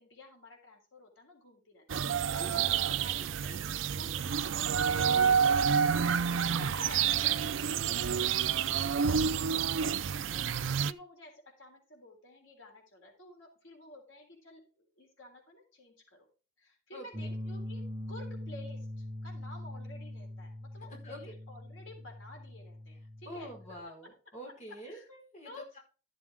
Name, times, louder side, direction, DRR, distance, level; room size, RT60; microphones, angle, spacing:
voice 1, 0.0-3.6 3.9-16.3 16.6-23.5 24.7-25.1 25.4-25.7, left 1 dB, 90° left, 1 dB, 3.6 m, -52 dB
sound 1, 1.9-10.9, right 7 dB, 90° right, 0.5 m, -29 dB
voice 2, 2.3-3.0 16.9-17.4 21.0-21.3 23.2-25.8, equal, 40° left, -1 dB, 4.9 m, -47 dB
sound 2, 17.1-23.8, left 1 dB, 25° right, 1.1 m, -42 dB
13.0 x 7.6 x 3.6 m, 0.36 s
head